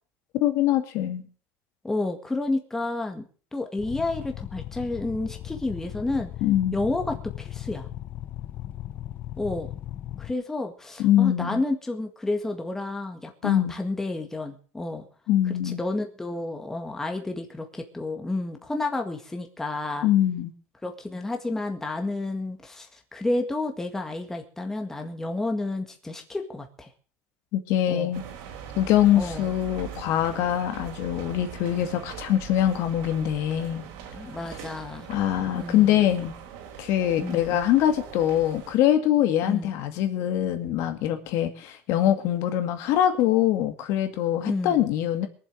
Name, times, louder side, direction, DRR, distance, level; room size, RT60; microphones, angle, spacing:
voice 1, 0.4-1.2 6.4-6.8 11.0-11.6 13.4-13.7 15.3-15.8 20.0-20.5 27.5-28.2 28.8-33.8 35.1-36.3 36.8-45.3, left 11 dB, 60° left, 7 dB, 2.2 m, -23 dB
voice 2, 1.8-3.2 3.5-6.3 6.7-7.9 9.4-9.7 10.2-15.1 15.5-20.1 20.8-26.9 27.9-28.1 29.2-29.5 34.1-35.1 35.6-36.1 37.2-37.6 39.5-39.7 44.5-44.8, left 2 dB, 10° left, 4 dB, 1.8 m, -30 dB
sound 1, 3.8-10.3, left 13 dB, 40° left, 0.7 m, -37 dB
sound 2, 28.1-38.7, right 7 dB, 75° right, 3.4 m, -41 dB
22.5 x 7.5 x 6.4 m, 0.41 s
cardioid pair, 150°, 5 cm